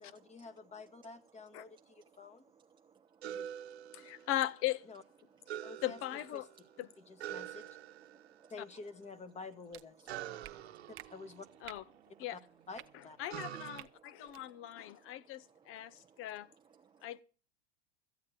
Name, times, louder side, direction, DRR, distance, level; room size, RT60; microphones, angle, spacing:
voice 1, 0.0-2.4 3.2-3.5 4.9-5.0 5.6-6.0 6.3-6.5 7.1-7.6 8.5-10.1 11.1-11.5 12.3-12.4 12.7-13.2, left 4 dB, 20° left, 1.3 m, -49 dB
voice 2, 2.6-4.3 5.5-5.7 7.6-7.7 8.1-8.5 10.3-10.9 12.1-12.2 13.5-13.6 14.0-16.2 16.7-17.1, right 6 dB, 15° right, 0.7 m, -64 dB
sound 1, 3.2-4.7 5.5-6.7 7.2-8.4 10.1-12.2 13.3-13.8, right 11 dB, 90° right, 1.1 m, -46 dB
voice 3, 3.9-4.9 5.8-6.5 6.8-6.9 11.6-11.8 12.2-12.4 13.2-16.5 17.0-17.2, left 14 dB, 45° left, 0.9 m, -38 dB
sound 2, 9.7-9.8 10.4-10.5 10.9-11.1 11.6-11.8 12.7-12.9 13.7-13.9 14.3-14.4, right 16 dB, 45° right, 0.9 m, -50 dB
14.0 x 8.6 x 7.3 m
supercardioid pair, 115°, 31 cm